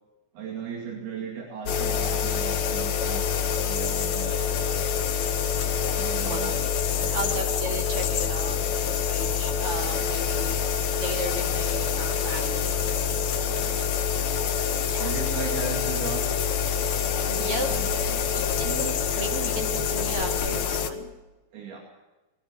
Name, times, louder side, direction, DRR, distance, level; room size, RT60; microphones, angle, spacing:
voice 1, 0.3-4.6 5.9-6.7 6.9-7.5 13.5-14.0 15.0-16.5 17.3-18.4 21.5-21.8, right 5 dB, 85° right, -1 dB, 4.5 m, -37 dB
sound 1, 1.7-20.9, left 7 dB, 60° left, 2.1 m, -26 dB
voice 2, 7.1-10.6 11.0-12.8 14.8-15.1 17.3-17.7 18.3-21.1, right 2 dB, 40° right, 2 dB, 3.3 m, -35 dB
20.5 x 15.5 x 8.6 m, 1.1 s
omnidirectional pair, 4.3 m